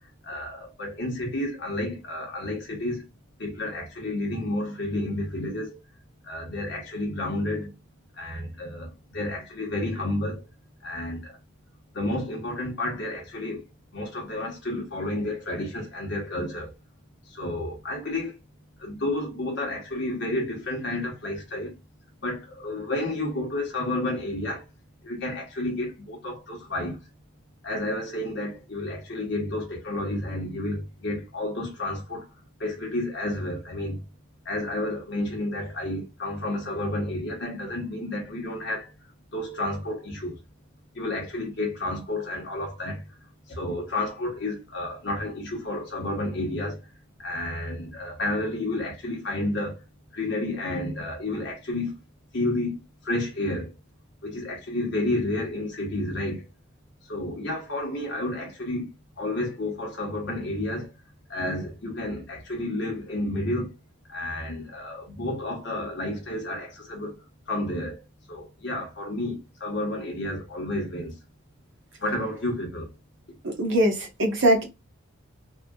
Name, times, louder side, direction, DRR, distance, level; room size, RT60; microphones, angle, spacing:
voice 1, 0.0-3.0 3.4-5.8 6.2-7.7 8.1-10.4 10.8-11.4 11.9-13.6 13.9-16.7 17.3-18.4 18.8-21.8 22.2-24.7 25.0-27.0 27.6-32.3 32.6-34.0 34.4-38.9 39.3-40.4 40.9-43.2 43.5-46.9 47.2-49.8 50.1-52.0 52.3-53.7 54.2-56.5 57.0-58.9 59.2-60.9 61.3-63.7 64.1-68.0 68.3-71.2 72.0-72.9, left 1 dB, 50° left, 1.0 m, -31 dB
voice 2, 73.4-74.7, right 1 dB, 55° right, 1.1 m, -22 dB
3.5 x 2.4 x 2.3 m
head